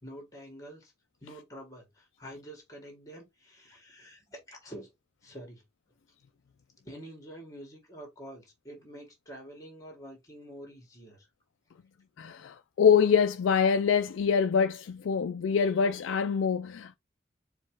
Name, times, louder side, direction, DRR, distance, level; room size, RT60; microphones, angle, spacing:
voice 1, 0.0-0.9 1.2-4.9 5.2-5.6 6.8-11.3, right 1 dB, 15° left, 1.5 m, -47 dB
voice 2, 12.2-17.0, left 6 dB, 90° left, 0.4 m, -25 dB
4.5 x 2.4 x 4.6 m
head